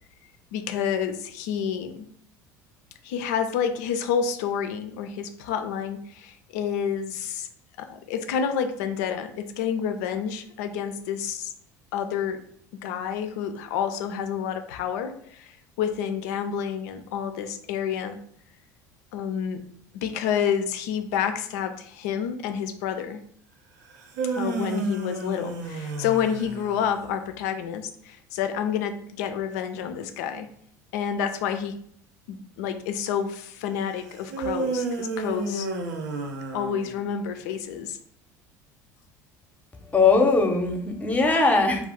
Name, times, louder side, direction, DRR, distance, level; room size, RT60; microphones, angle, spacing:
voice 1, 0.5-2.1 3.0-7.5 7.8-11.5 11.9-12.4 12.8-18.2 19.1-19.6 19.9-23.2 24.3-30.5 30.9-31.8 32.3-35.7 36.5-38.0, left 8 dB, 75° left, 8 dB, 0.3 m, -29 dB
sound 1, 23.9-27.1 34.3-37.2, right 3 dB, 80° right, 0.5 m, -31 dB
voice 2, 39.9-41.9, left 3 dB, 15° left, 4 dB, 0.6 m, -20 dB
2.4 x 2.3 x 3.5 m, 0.64 s
hypercardioid pair, 75°, 9 cm